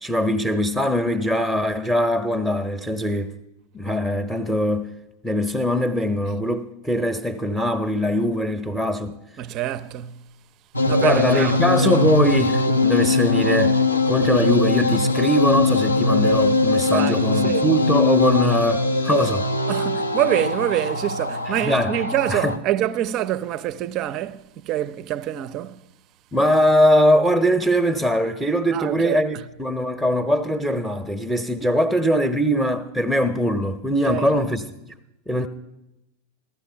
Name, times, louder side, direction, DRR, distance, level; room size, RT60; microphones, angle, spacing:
voice 1, 0.0-3.3 3.7-4.9 5.2-9.2 11.0-13.8 14.1-19.5 21.6-22.0 22.3-22.6 26.3-34.7 35.3-35.5, equal, ahead, 0.8 m, -21 dB
voice 2, 9.4-10.3 10.9-12.0 16.9-17.6 19.7-25.8 28.7-29.4 34.0-34.3, right 13 dB, 35° right, 0.6 m, -26 dB
piano wha echo, 10.7-22.6, left 3 dB, 85° left, 0.8 m, -21 dB
14.5 x 13.0 x 5.7 m
figure-of-eight pair, 90°, 0 cm